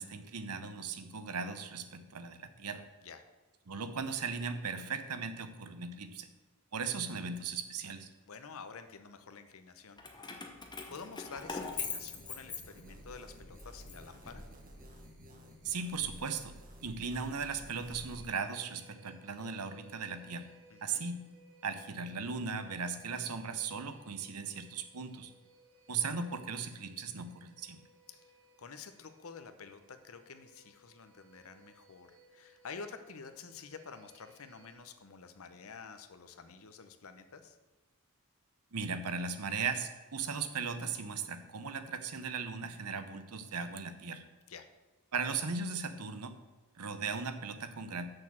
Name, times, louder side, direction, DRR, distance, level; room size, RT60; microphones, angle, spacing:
voice 1, 0.0-2.9 3.7-6.3 6.7-8.1 15.6-16.6 16.8-20.5 20.8-21.2 21.6-25.3 25.9-27.8 38.7-44.3 45.1-46.3 46.8-48.0, right 5 dB, 90° right, 9 dB, 0.9 m, -37 dB
voice 2, 8.3-10.0 10.9-14.5 20.7-21.1 28.1-28.2 28.6-37.6 44.5-44.7, left 5 dB, 70° left, 9 dB, 0.8 m, -49 dB
Keys jangling, 10.0-13.1 13.6-14.9, left 5 dB, 20° left, 0.9 m, -42 dB
sound 1, 11.4-18.2, equal, 40° right, 1.4 m, -52 dB
sound 2, 17.8-34.8, right 2 dB, 65° right, 2.8 m, -63 dB
6.5 x 6.4 x 7.4 m, 1.2 s
head